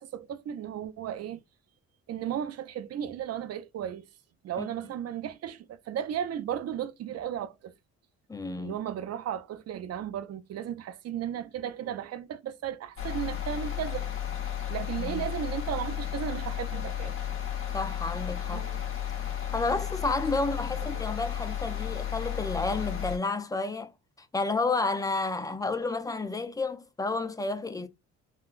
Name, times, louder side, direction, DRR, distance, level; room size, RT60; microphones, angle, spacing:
voice 1, 0.0-1.4 2.1-4.0 4.4-7.7 8.6-14.1 14.7-17.1 18.5-18.8 20.9-21.0, right 10 dB, 55° right, 0.5 m, -35 dB
voice 2, 8.3-8.8 15.0-15.2 17.7-18.7 19.5-23.9 24.3-27.9, left 3 dB, 10° left, 0.4 m, -31 dB
sound 1, 13.0-23.2, left 10 dB, 45° left, 1.1 m, -33 dB
3.7 x 2.2 x 2.4 m
cardioid pair, 90°, 30 cm